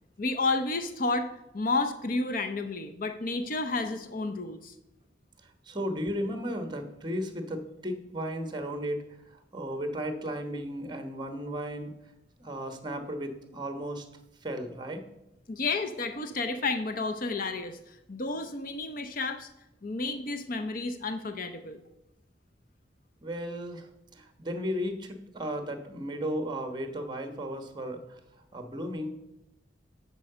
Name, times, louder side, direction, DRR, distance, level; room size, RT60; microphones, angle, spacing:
voice 1, 0.2-1.3 1.5-4.7 15.5-19.5 19.8-21.8, left 3 dB, 50° left, 8 dB, 0.7 m, -31 dB
voice 2, 5.4-11.9 12.4-14.1 14.4-15.0 23.2-28.2 28.5-29.1, equal, 25° right, 7 dB, 1.2 m, -35 dB
10.5 x 4.8 x 6.7 m, 0.89 s
head